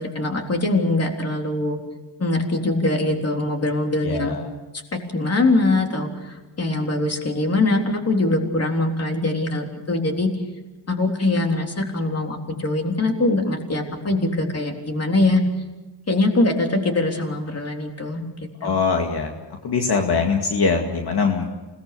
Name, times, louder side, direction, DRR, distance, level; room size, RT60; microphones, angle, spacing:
voice 1, 0.0-1.8 2.2-4.4 4.9-10.3 10.9-15.4 16.1-18.2 18.6-18.7, left 2 dB, 35° left, 2 dB, 3.7 m, -22 dB
voice 2, 4.0-4.5 18.6-19.3 19.6-21.5, left 5 dB, 60° left, 2 dB, 2.3 m, -22 dB
28.5 x 18.5 x 6.8 m, 1.1 s
wide cardioid pair, 125°, 43 cm